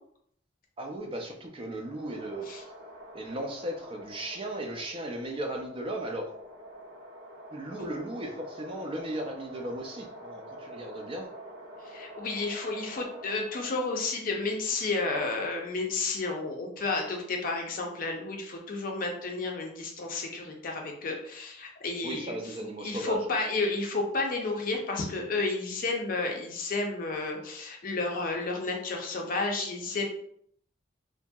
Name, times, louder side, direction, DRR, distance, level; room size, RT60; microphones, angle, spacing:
voice 1, 0.8-2.5 3.1-6.3 7.5-11.3 22.0-23.2, right 1 dB, 30° right, 2 dB, 0.4 m, -36 dB
sound 1, 1.7-14.2, equal, 70° right, 0.7 m, -47 dB
voice 2, 11.8-22.4 22.8-30.0, left 3 dB, 45° left, 1 dB, 0.5 m, -31 dB
2.8 x 2.6 x 2.2 m, 0.68 s
head